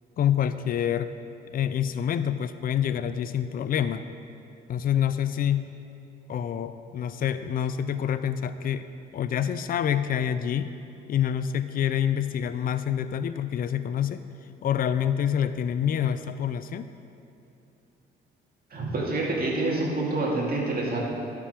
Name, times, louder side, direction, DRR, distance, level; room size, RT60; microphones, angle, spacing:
voice 1, 0.2-1.1 1.5-4.0 4.7-5.7 6.3-8.9 9.1-10.7 11.1-14.2 14.6-16.9, left 9 dB, 45° left, 12 dB, 0.4 m, -27 dB
voice 2, 18.7-21.0, right 2 dB, 50° right, -3 dB, 2.4 m, -27 dB
12.0 x 5.9 x 5.0 m, 2.8 s
cardioid pair, 90°, 20 cm